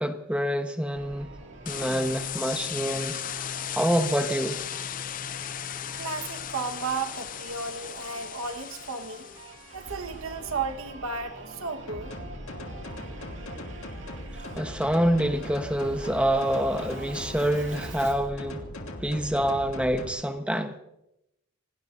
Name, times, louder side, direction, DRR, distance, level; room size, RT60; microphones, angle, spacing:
voice 1, 0.0-1.3 1.7-4.6 14.6-18.6 19.0-20.8, equal, 5° right, 1.0 m, -27 dB
Singing / Musical instrument, 0.9-18.3, right 2 dB, 60° right, 2.2 m, -46 dB
sound 1, 1.7-9.9, left 9 dB, 40° left, 0.4 m, -36 dB
voice 2, 5.9-9.3 9.7-12.1, right 4 dB, 80° right, 1.4 m, -34 dB
sound 2, 11.9-20.1, left 1 dB, 90° left, 2.0 m, -39 dB
27.0 x 18.5 x 2.6 m
head